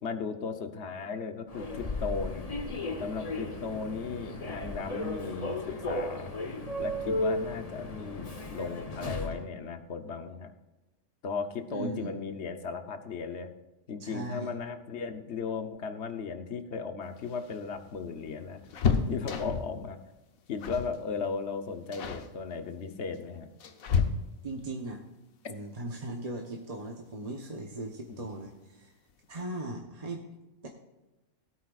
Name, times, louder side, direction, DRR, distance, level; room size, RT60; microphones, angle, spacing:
voice 1, 0.0-2.5 3.0-6.4 6.8-10.5 11.2-13.5 13.9-18.6 19.1-20.0 20.5-23.5 28.1-28.2, left 5 dB, 55° left, 8 dB, 1.1 m, -36 dB
Human voice / Subway metro underground, 1.5-9.4, left 1 dB, 30° left, 1.0 m, -35 dB
voice 2, 11.7-12.1 14.0-14.5 24.4-25.0 25.5-28.9 29.3-30.3 30.6-30.7, right 2 dB, 30° right, 1 dB, 1.0 m, -38 dB
sound 1, 17.1-19.8 20.6-21.0 21.2-21.5 21.9-22.3 23.1-24.6 26.3-26.4 26.8-26.9 28.1-28.5 28.8-28.9 29.2-29.4, left 6 dB, 85° left, 1.3 m, -31 dB
17.0 x 8.4 x 2.4 m, 1.0 s
omnidirectional pair, 1.4 m